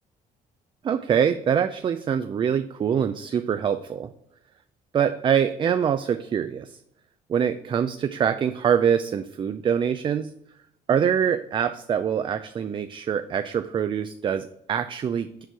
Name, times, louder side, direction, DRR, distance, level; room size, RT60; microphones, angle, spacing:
voice 1, 0.8-4.1 4.9-6.8 7.3-10.3 10.9-15.4, right 8 dB, 30° right, 9 dB, 0.3 m, -24 dB
6.8 x 4.5 x 4.6 m, 0.78 s
cardioid pair, 110°, 17 cm